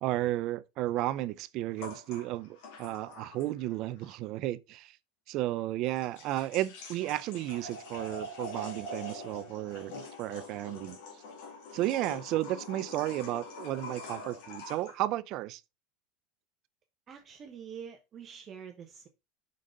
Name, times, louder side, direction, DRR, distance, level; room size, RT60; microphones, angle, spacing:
voice 1, 0.0-5.0 5.3-11.0 11.7-15.6, right 15 dB, 55° right, 0.4 m, -33 dB
sound 1, 1.8-3.7 4.0-4.1 5.9-15.0, left 2 dB, 70° left, 2.2 m, -44 dB
voice 2, 17.1-19.1, right 7 dB, 35° right, 0.9 m, -46 dB
5.3 x 3.7 x 5.2 m
supercardioid pair, 120°, 0 cm